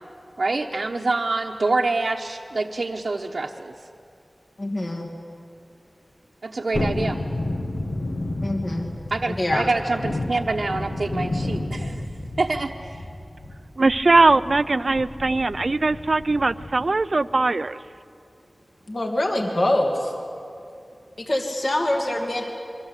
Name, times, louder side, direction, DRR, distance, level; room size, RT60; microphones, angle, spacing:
voice 1, 0.4-3.7 6.4-7.2 9.1-12.1 12.4-13.1, right 3 dB, 75° right, -1 dB, 1.1 m, -26 dB
voice 2, 4.6-5.1 8.4-8.9 9.3-9.6 18.9-20.1 21.3-22.4, left 1 dB, 55° left, 1 dB, 2.7 m, -24 dB
Thunderstorm, 6.7-17.0 17.3-17.4, left 1 dB, 80° left, 2.1 m, -31 dB
voice 3, 13.8-17.8, right 3 dB, 60° right, 15 dB, 0.6 m, -20 dB
28.0 x 23.0 x 8.3 m, 2.6 s
wide cardioid pair, 70°, 0 cm